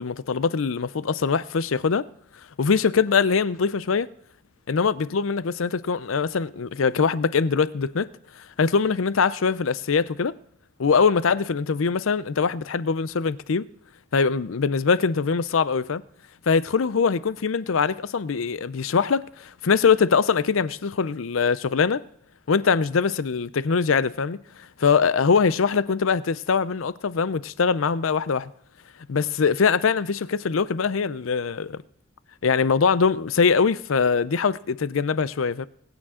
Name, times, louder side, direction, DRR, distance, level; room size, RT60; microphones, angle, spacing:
voice 1, 0.0-2.1 2.6-4.1 4.7-8.1 8.6-10.3 10.8-13.6 14.1-16.0 16.5-22.0 22.5-24.4 24.8-28.5 29.1-31.8 32.4-35.7, left 5 dB, 80° left, 0.5 m, -22 dB
20.5 x 8.9 x 3.8 m
head